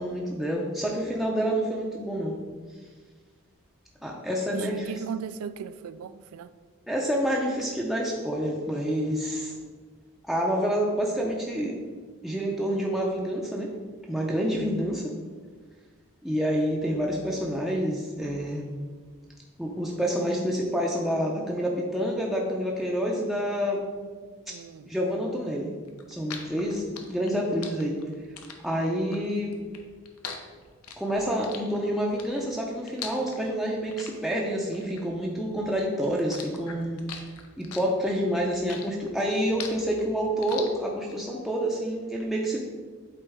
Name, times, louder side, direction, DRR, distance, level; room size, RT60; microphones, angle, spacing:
voice 1, 0.0-2.4 4.0-4.9 6.9-9.5 10.2-11.8 12.2-13.7 14.1-15.1 16.2-18.7 19.6-23.9 24.5-24.6 24.9-25.7 26.1-28.0 28.6-29.6 31.0-37.0 37.6-42.6, equal, ahead, -3 dB, 0.5 m, -28 dB
voice 2, 4.5-6.5 24.5-24.9, right 6 dB, 80° right, 14 dB, 0.3 m, -37 dB
sound 1, 25.9-35.7 36.0-41.2, left 6 dB, 90° left, 0.8 m, -42 dB
8.5 x 4.0 x 3.5 m, 1.5 s
head